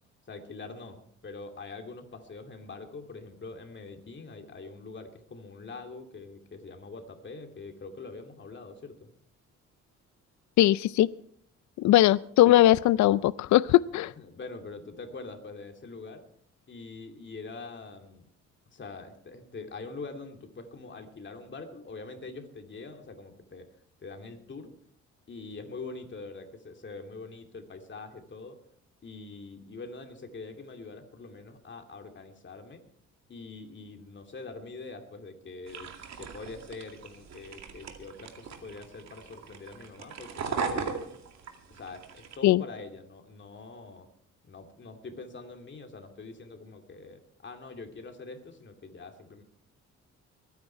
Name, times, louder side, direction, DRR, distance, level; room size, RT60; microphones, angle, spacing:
voice 1, 0.3-9.1 14.2-16.2 16.7-18.3 18.7-23.7 24.0-24.7 25.3-28.6 29.0-32.8 33.3-35.9 36.2-41.0 41.7-44.1 44.4-49.4, left 3 dB, 40° left, 4 dB, 2.6 m, -44 dB
voice 2, 10.6-11.1 11.8-14.1 42.4-42.6, left 14 dB, 70° left, 18 dB, 0.5 m, -20 dB
sound 1, 35.7-42.4, right 5 dB, 60° right, 2.3 m, -38 dB
22.5 x 9.7 x 4.6 m, 0.66 s
cardioid pair, 90°, 30 cm